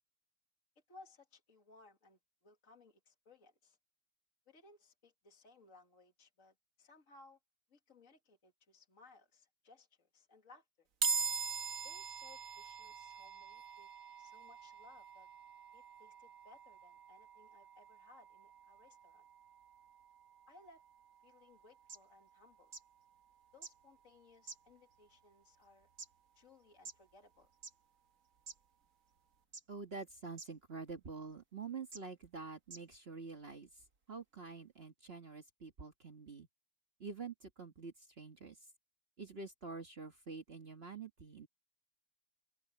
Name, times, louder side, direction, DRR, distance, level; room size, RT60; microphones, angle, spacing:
voice 1, 0.9-3.8 4.5-7.4 7.7-10.9 11.8-13.9 14.2-15.3 15.7-19.2 20.5-20.8 21.2-22.7 23.5-25.9 26.3-27.5, left 3 dB, 60° left, 2.5 m, -63 dB
sound 1, 11.0-24.3, right 5 dB, 65° right, 1.6 m, -44 dB
sound 2, 21.6-21.7 21.9-22.0 22.7-22.8 23.6-23.7 24.5-24.9 25.6-26.1 26.9-27.0 27.5-27.7 28.5-28.6 29.5-29.8 30.4-30.5 31.3-31.4 31.9-32.0 32.7-32.8 33.6-33.7, right 4 dB, 85° right, 2.8 m, -48 dB
voice 2, 29.7-33.8 34.1-36.5 37.0-38.6 39.2-41.5, right 4 dB, 45° right, 1.8 m, -47 dB
open air
omnidirectional pair, 1.5 m